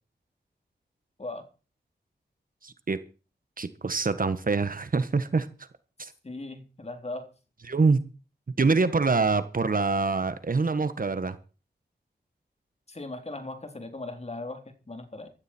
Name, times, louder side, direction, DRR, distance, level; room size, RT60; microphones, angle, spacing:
voice 1, 2.6-3.0 3.6-5.5 6.0-6.1 7.7-8.0 8.6-11.4, right 4 dB, 50° right, 1.5 m, -25 dB
voice 2, 6.2-7.3 12.9-15.3, left 2 dB, 35° left, 3.6 m, -38 dB
16.0 x 13.5 x 4.5 m
wide cardioid pair, 85°, 18 cm